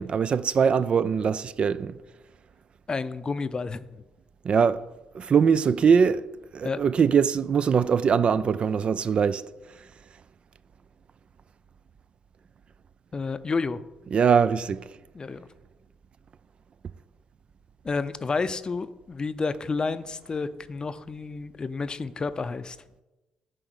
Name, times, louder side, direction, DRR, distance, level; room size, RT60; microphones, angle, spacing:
voice 1, 0.0-2.0 4.4-4.9 5.1-6.3 6.5-9.4 14.1-14.9, right 6 dB, 50° right, 0.3 m, -22 dB
voice 2, 2.9-4.0 6.6-6.8 13.1-13.8 15.1-15.4 17.8-22.8, left 4 dB, 35° left, 0.5 m, -30 dB
9.0 x 3.9 x 6.3 m
supercardioid pair, 55°, 2 cm